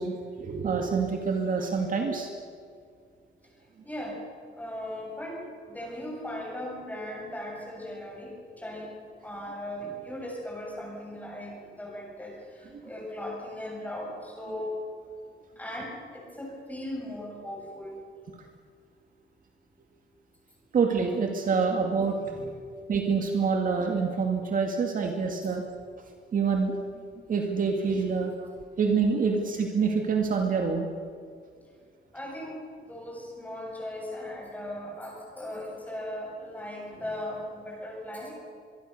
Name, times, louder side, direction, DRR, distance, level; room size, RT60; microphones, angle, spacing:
voice 1, 0.0-2.3 20.7-22.2 22.9-25.6 26.3-26.8 27.3-28.3 28.8-30.9, right 5 dB, 45° right, 3 dB, 2.3 m, -26 dB
voice 2, 3.8-4.2 4.6-8.9 9.2-14.7 15.6-18.0 22.2-22.5 32.1-32.6 32.9-38.3, left 1 dB, 10° left, -2 dB, 7.5 m, -38 dB
25.0 x 23.0 x 6.8 m, 2.2 s
wide cardioid pair, 170°, 20 cm